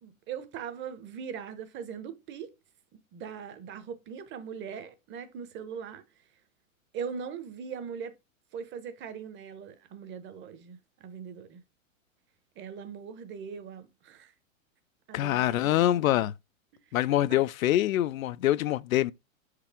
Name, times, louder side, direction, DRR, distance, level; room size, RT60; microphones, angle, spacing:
voice 1, 0.0-2.5 3.1-6.0 6.9-8.1 8.5-11.6 12.6-14.3 15.1-15.9 16.9-17.0 17.3-17.4, right 7 dB, 30° right, 1.0 m, -40 dB
voice 2, 15.1-16.3 16.9-19.1, left 13 dB, 80° left, 0.5 m, -25 dB
6.5 x 4.8 x 3.5 m
hypercardioid pair, 120°, 40 cm